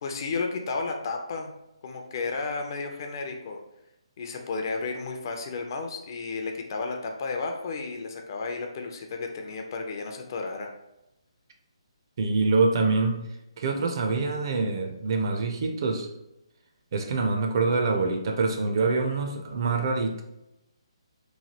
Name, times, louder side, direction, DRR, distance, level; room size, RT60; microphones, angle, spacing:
voice 1, 0.0-1.5 1.8-3.6 4.2-10.7, left 4 dB, 40° left, 3 dB, 0.4 m, -33 dB
voice 2, 12.2-13.2 13.6-16.1 16.9-20.2, right 3 dB, 45° right, 3 dB, 0.4 m, -25 dB
3.1 x 2.3 x 2.8 m, 0.88 s
hypercardioid pair, 155°, 3 cm